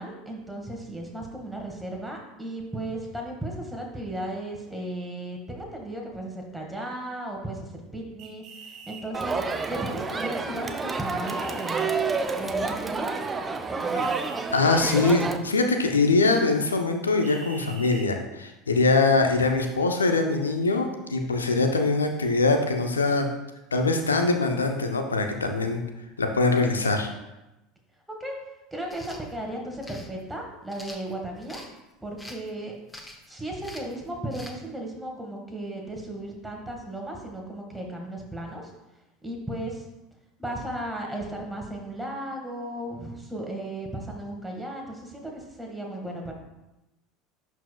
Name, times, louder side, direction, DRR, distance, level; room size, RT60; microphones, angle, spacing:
voice 1, 0.0-11.9 12.4-13.2 13.7-14.2 28.2-28.4 28.7-31.6 32.0-32.7 33.3-38.7 39.2-39.8 40.4-46.3, right 1 dB, 5° right, 0 dB, 1.7 m, -35 dB
sound 1, 8.2-9.0 11.2-11.9 14.0-14.4 17.2-18.1, right 5 dB, 50° right, 1.7 m, -44 dB
Crowd, 9.1-15.4, right 4 dB, 20° right, 0.6 m, -29 dB
voice 2, 14.5-23.3 23.7-25.8 26.2-27.1, left 3 dB, 85° left, 5 dB, 0.7 m, -23 dB
sound 2, 28.8-29.2 29.8-30.1 30.7-31.7 32.2-32.5 32.9-33.3 33.6-33.9 34.3-34.6, left 1 dB, 10° left, 1.0 m, -44 dB
11.0 x 4.6 x 2.3 m, 0.98 s
figure-of-eight pair, 75°, 0 cm